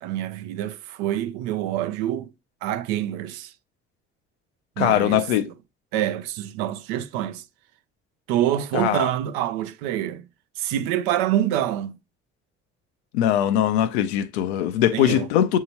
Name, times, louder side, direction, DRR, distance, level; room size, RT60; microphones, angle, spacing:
voice 1, 0.0-2.3 2.6-3.5 4.8-5.3 5.9-7.4 8.3-10.2 10.6-12.0 14.9-15.3, right 12 dB, 80° right, 0.5 m, -26 dB
voice 2, 4.8-5.5 8.7-9.1 13.1-15.6, left 11 dB, 90° left, 0.5 m, -21 dB
6.8 x 2.8 x 2.8 m
hypercardioid pair, 55°, 32 cm